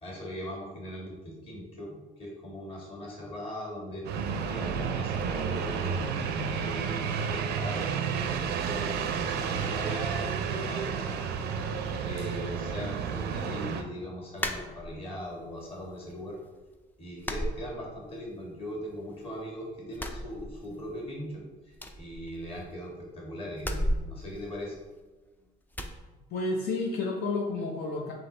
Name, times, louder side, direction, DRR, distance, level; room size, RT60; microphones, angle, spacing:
voice 1, 0.0-4.0 4.4-11.2 12.0-16.4 17.0-24.8, equal, 35° left, -3 dB, 1.5 m, -40 dB
sound 1, 4.0-13.8, right 6 dB, 75° right, 0.5 m, -31 dB
sound 2, 14.4-15.3 15.7-16.4 16.6-16.8 17.2-18.3 18.6-19.5 19.9-21.0 21.3-21.4 21.7-22.9 23.6-25.2 25.7-26.0, equal, 10° left, 0.4 m, -35 dB
voice 2, 26.3-28.1, left 3 dB, 70° left, 0 dB, 0.6 m, -30 dB
4.0 x 2.8 x 3.8 m, 1.2 s
cardioid pair, 110°, 17 cm